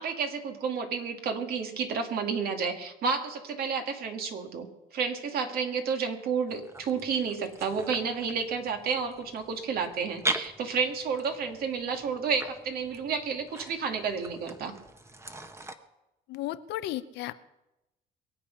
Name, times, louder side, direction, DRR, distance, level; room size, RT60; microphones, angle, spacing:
voice 1, 0.0-4.7 4.9-14.7, right 5 dB, 65° right, 5 dB, 2.1 m, -31 dB
sound 1, 6.5-15.7, right 2 dB, 15° right, 1.1 m, -40 dB
voice 2, 16.3-17.3, left 14 dB, 80° left, 13 dB, 0.8 m, -34 dB
22.5 x 8.4 x 5.7 m, 0.96 s
cardioid pair, 110°, 17 cm